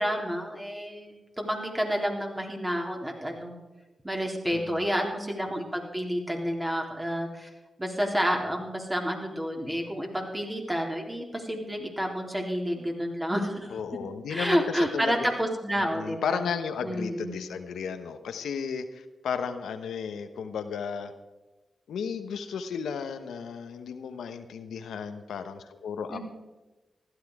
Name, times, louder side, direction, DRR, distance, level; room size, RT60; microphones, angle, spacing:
voice 1, 0.0-3.5 4.0-7.5 7.8-13.8 14.3-16.4 16.8-17.4 26.1-26.2, equal, 15° right, 1 dB, 3.8 m, -30 dB
voice 2, 4.5-4.9 13.7-15.3 15.8-21.1 21.9-26.2, left 6 dB, 85° left, 8 dB, 0.9 m, -34 dB
15.5 x 12.5 x 4.8 m, 1.1 s
cardioid pair, 50°, 0 cm